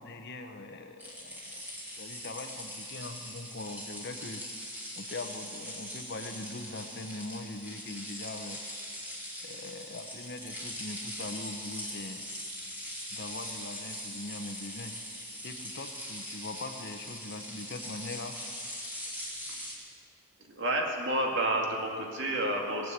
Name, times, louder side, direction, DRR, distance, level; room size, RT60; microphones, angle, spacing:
voice 1, 0.0-1.7 2.0-4.4 5.0-8.6 9.4-12.2 13.1-14.9 15.4-18.4, left 2 dB, 50° left, 7 dB, 0.9 m, -41 dB
sound 1, 1.0-19.7, equal, 10° right, 2.4 m, -41 dB
voice 2, 20.6-22.9, right 1 dB, 55° right, 0 dB, 2.3 m, -30 dB
18.5 x 7.8 x 8.1 m, 2.2 s
head